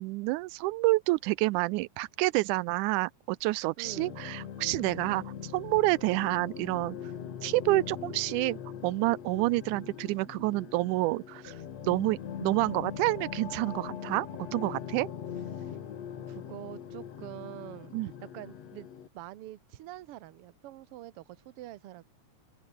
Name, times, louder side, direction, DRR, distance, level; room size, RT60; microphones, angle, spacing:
voice 1, 0.0-5.2 5.5-7.0 7.4-8.6 8.8-11.6 11.8-15.1 17.9-18.1, right 21 dB, 85° right, 2.1 m, -28 dB
sound 1, 3.8-19.1, left 9 dB, 60° left, 2.9 m, -41 dB
voice 2, 3.8-4.2 5.0-5.2 9.7-9.9 15.5-15.7 16.3-18.9 19.1-22.0, right 15 dB, 65° right, 1.6 m, -46 dB
omnidirectional pair, 3.5 m